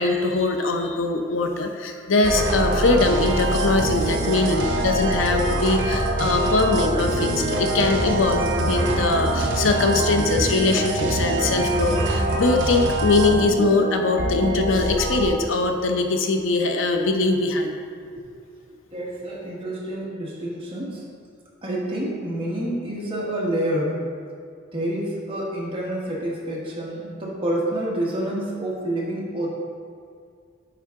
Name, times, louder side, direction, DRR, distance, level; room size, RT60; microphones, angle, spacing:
voice 1, 0.0-17.8, left 3 dB, 75° left, 4 dB, 0.6 m, -22 dB
sound 1, 2.2-15.3, right 1 dB, 65° right, 0.8 m, -24 dB
voice 2, 18.9-21.0 21.6-24.0 24.7-29.5, right 1 dB, 30° right, -5 dB, 1.4 m, -28 dB
8.3 x 4.6 x 3.7 m, 2.2 s
head